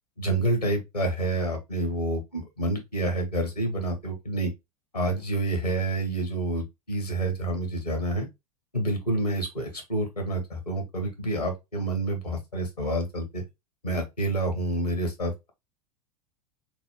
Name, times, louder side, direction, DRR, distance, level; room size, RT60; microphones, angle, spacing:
voice 1, 0.2-4.5 4.9-8.3 8.7-13.4 13.8-15.5, right 1 dB, 85° left, 1.8 m, -28 dB
5.9 x 2.3 x 3.4 m
figure-of-eight pair, 85°, 20 cm